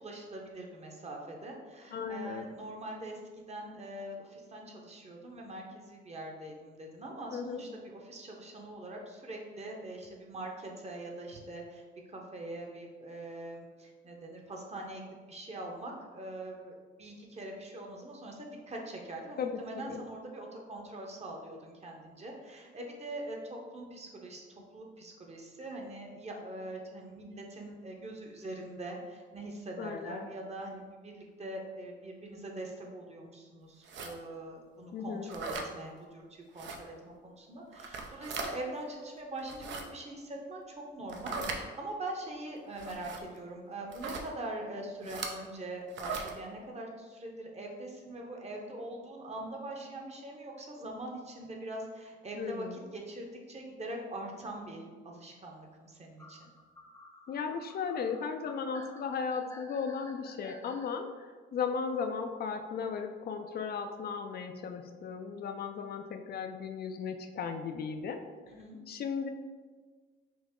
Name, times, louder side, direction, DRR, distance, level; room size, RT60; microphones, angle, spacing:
voice 1, 0.0-11.8 12.1-24.5 24.7-56.5 68.5-68.8, right 1 dB, 35° right, 0 dB, 0.9 m, -43 dB
voice 2, 1.9-2.5 7.3-7.6 19.4-20.0 29.8-30.3 34.9-35.3 45.0-45.1 52.4-52.8 57.3-68.2 68.9-69.3, left 6 dB, 50° left, 6 dB, 0.4 m, -36 dB
sound 1, 33.8-34.1 35.3-35.7 36.6-36.8 37.7-38.5 39.4-39.8 41.1-41.6 42.8-43.2 43.9-44.3 45.0-45.3 45.9-46.3, right 4 dB, 70° right, 0.6 m, -38 dB
sound 2, 56.2-60.9, left 1 dB, 15° left, 0.7 m, -53 dB
5.9 x 2.0 x 3.6 m, 1.5 s
cardioid pair, 90°, 20 cm